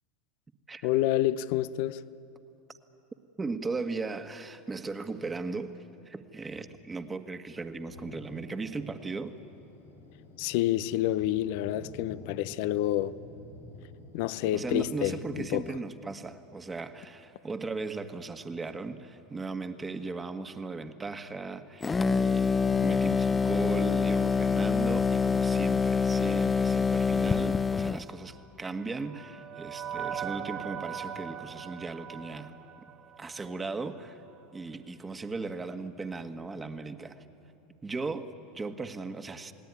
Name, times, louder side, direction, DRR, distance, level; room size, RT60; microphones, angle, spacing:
voice 1, 0.8-2.0 10.4-13.2 14.1-15.6, left 14 dB, 65° left, 0.7 m, -28 dB
voice 2, 3.4-5.8 6.0-9.3 14.5-32.6 33.2-34.2 34.5-37.2 37.8-39.5, right 3 dB, 20° right, 1.7 m, -37 dB
Thunder, 7.9-15.4, left 3 dB, 85° left, 6.8 m, -49 dB
sound 1, 21.8-28.0, left 5 dB, 20° left, 0.7 m, -26 dB
sound 2, 28.3-33.6, right 8 dB, 50° right, 2.1 m, -40 dB
29.0 x 19.0 x 9.7 m
hypercardioid pair, 90°, 0 cm